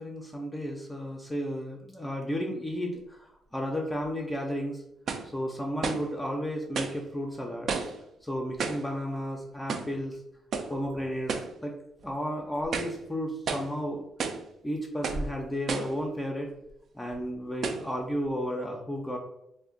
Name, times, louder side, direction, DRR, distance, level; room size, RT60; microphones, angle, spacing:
voice 1, 0.0-4.8 5.2-7.7 8.2-10.2 10.7-11.7 12.0-14.0 14.6-16.5 16.9-19.2, equal, 10° left, 0 dB, 0.4 m, -33 dB
sound 1, 4.0-4.1 5.1-5.3 5.8-6.1 6.8-7.0 7.7-8.0 8.6-8.9 9.7-10.0 10.5-10.8 11.3-11.6 12.0-12.1 12.6-13.0 13.5-13.7 14.2-14.5 15.0-15.3 15.7-16.0 16.7-16.8 17.6-17.9, right 4 dB, 60° right, 0.3 m, -32 dB
2.4 x 2.1 x 3.7 m, 0.79 s
cardioid pair, 90°, 0 cm